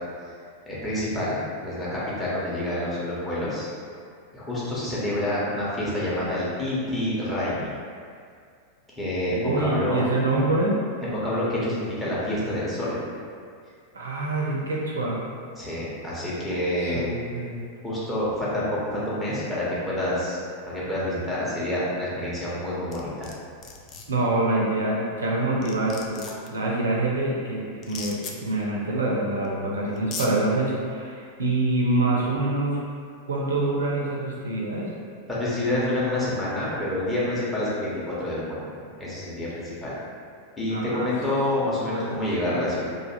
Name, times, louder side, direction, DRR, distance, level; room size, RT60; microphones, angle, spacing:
voice 1, 0.7-3.7 4.3-7.7 9.0-10.1 11.0-13.0 15.5-17.1 17.8-20.4 20.7-23.3 35.3-40.0 40.6-42.9, left 1 dB, 10° left, -9 dB, 0.9 m, -28 dB
voice 2, 9.3-10.7 13.9-15.2 16.8-17.6 24.1-26.2 26.5-32.8 33.2-34.9 40.7-41.1 41.6-42.1, right 2 dB, 70° right, -4 dB, 0.5 m, -26 dB
sound 1, 22.9-23.3 23.6-24.0 25.2-25.3 25.6-26.5 27.8-28.3 29.4-29.5 30.0-30.3, left 5 dB, 35° left, 0.3 m, -36 dB
2.4 x 2.4 x 2.9 m, 2.2 s
figure-of-eight pair, 90°, 0 cm